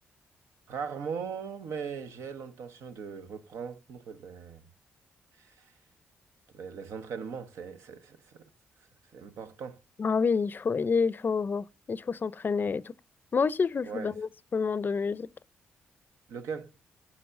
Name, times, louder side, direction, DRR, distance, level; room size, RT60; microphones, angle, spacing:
voice 1, 0.7-4.7 5.4-5.7 6.5-8.5 9.1-9.8 13.8-14.1 16.3-16.7, right 6 dB, 75° right, 0.8 m, -39 dB
voice 2, 10.0-12.9 13.3-15.3, left 5 dB, 40° left, 0.5 m, -28 dB
12.0 x 5.8 x 2.5 m
supercardioid pair, 50°, 5 cm